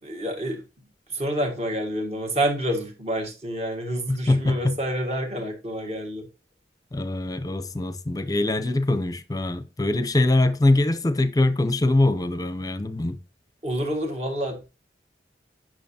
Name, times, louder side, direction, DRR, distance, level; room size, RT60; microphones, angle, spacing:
voice 1, 0.0-0.6 1.1-6.3 13.6-14.6, right 1 dB, 35° right, 1.7 m, -28 dB
voice 2, 4.1-4.8 6.9-13.2, left 2 dB, 20° left, 0.6 m, -23 dB
8.9 x 6.1 x 2.8 m
head